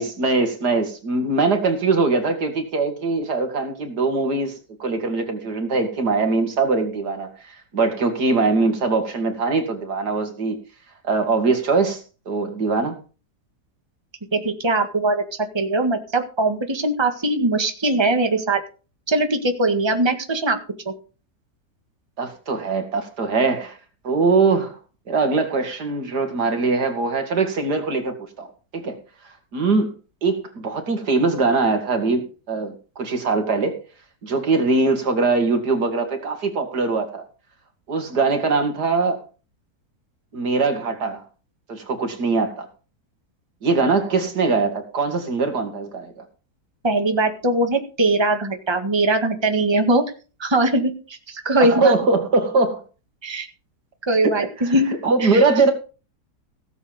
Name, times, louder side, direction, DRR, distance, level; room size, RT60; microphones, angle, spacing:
voice 1, 0.0-4.5 4.8-10.6 11.0-13.0 22.2-23.8 24.0-24.8 25.1-29.0 29.5-29.9 30.2-33.8 34.2-37.2 37.9-39.2 40.3-41.2 41.7-42.7 43.6-46.2 51.6-52.8 54.2-54.7 55.0-55.7, right 3 dB, 80° right, 2.8 m, -22 dB
voice 2, 14.3-15.2 15.5-18.6 19.1-20.6 20.8-20.9 46.8-50.0 50.4-51.9 53.2-53.5 54.1-54.9 55.2-55.4, right 2 dB, 15° right, 1.7 m, -21 dB
17.0 x 7.4 x 5.2 m
omnidirectional pair, 1.7 m